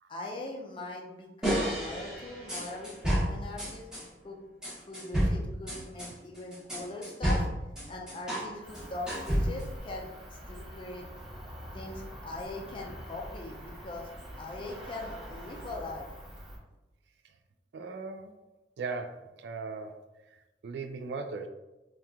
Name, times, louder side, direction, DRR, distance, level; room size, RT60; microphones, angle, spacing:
voice 1, 0.1-3.9 4.2-4.4 4.7-7.5 7.9-10.1 10.5-11.1 11.7-14.1 14.4-16.1, left 2 dB, 30° left, -1 dB, 0.5 m, -41 dB
sound 1, 1.4-4.0 4.6-8.5 8.7-9.8, equal, 5° right, 0.9 m, -31 dB
Cricket, 8.6-16.6, equal, 30° right, 0.8 m, -45 dB
voice 2, 17.7-18.3 18.8-20.0 20.3-21.5, right 4 dB, 70° right, 6 dB, 0.3 m, -38 dB
2.8 x 2.3 x 3.5 m, 1.0 s
head